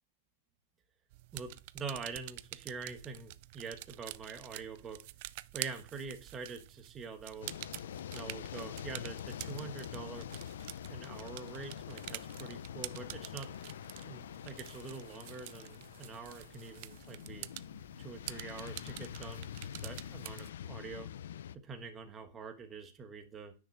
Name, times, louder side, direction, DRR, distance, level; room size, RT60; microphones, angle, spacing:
sound 1, 1.1-20.5, right 18 dB, 55° right, 0.4 m, -48 dB
voice 1, 1.3-5.0 5.5-7.5 8.1-10.2 10.9-13.5 14.0-17.5 18.0-21.1 21.6-23.5, right 4 dB, 20° right, 5 dB, 1.2 m, -45 dB
sound 2, 7.4-21.6, left 10 dB, 85° left, 0.4 m, -45 dB
9.9 x 5.9 x 3.2 m, 0.32 s
supercardioid pair, 145°, 0 cm